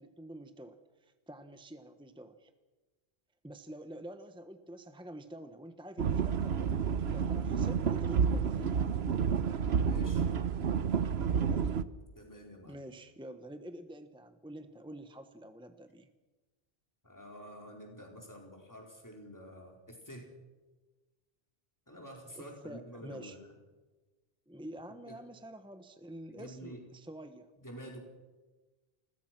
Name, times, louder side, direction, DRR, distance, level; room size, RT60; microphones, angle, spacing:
voice 1, 0.0-2.5 3.4-6.8 7.1-8.8 11.4-11.7 12.7-16.1 22.4-23.4 24.5-27.5, right 1 dB, 5° right, 8 dB, 1.2 m, -47 dB
sound 1, 6.0-11.8, right 6 dB, 80° right, 1.2 m, -30 dB
voice 2, 9.8-10.3 12.1-12.8 17.0-20.3 21.9-23.5 25.1-25.2 26.3-26.8 27.6-28.0, equal, 15° left, 1 dB, 4.4 m, -48 dB
29.0 x 21.0 x 6.1 m, 1.2 s
omnidirectional pair, 1.1 m